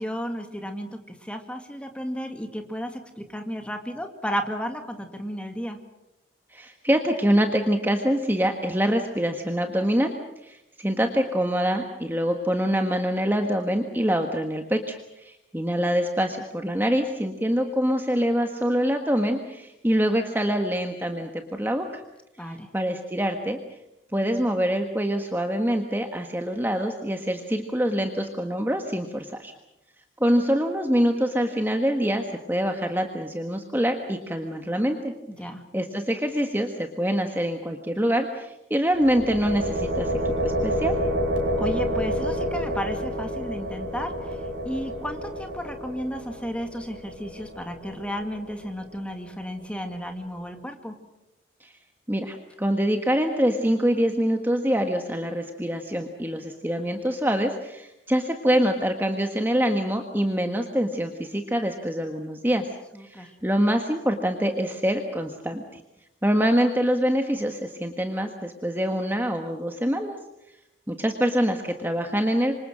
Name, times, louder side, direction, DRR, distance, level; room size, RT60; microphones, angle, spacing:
voice 1, 0.0-5.8 22.4-22.7 35.3-35.6 41.6-51.0 62.9-63.3, equal, 5° left, 5 dB, 2.1 m, -33 dB
voice 2, 6.5-10.1 10.4-22.0 22.5-23.6 24.1-29.5 30.2-35.1 35.7-41.0 51.6-51.7 52.1-62.7 63.0-65.8 66.2-70.2 70.9-72.6, equal, 10° right, 4 dB, 1.4 m, -25 dB
sound 1, 38.9-48.8, equal, 70° right, 5.1 m, -29 dB
27.0 x 25.5 x 6.3 m, 0.89 s
head